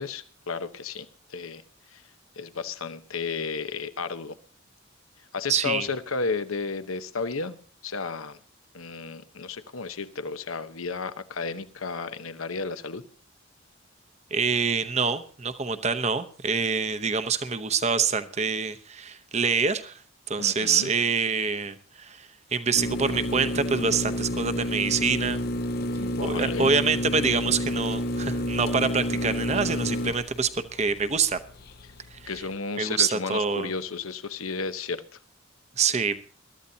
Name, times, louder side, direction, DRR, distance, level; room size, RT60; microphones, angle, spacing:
voice 1, 0.0-1.6 1.9-2.0 2.4-4.4 5.3-7.6 7.8-8.4 8.7-13.0 20.4-20.9 26.0-26.7 32.3-35.0, left 4 dB, 90° left, 11 dB, 1.0 m, -33 dB
voice 2, 5.5-5.9 14.3-20.0 20.3-25.4 26.2-31.4 32.1-32.3 32.8-33.7 35.8-36.2, right 5 dB, 30° right, 11 dB, 0.8 m, -26 dB
sound 1, 22.7-32.5, left 1 dB, 50° left, 0.7 m, -30 dB
22.0 x 13.5 x 2.8 m, 0.41 s
head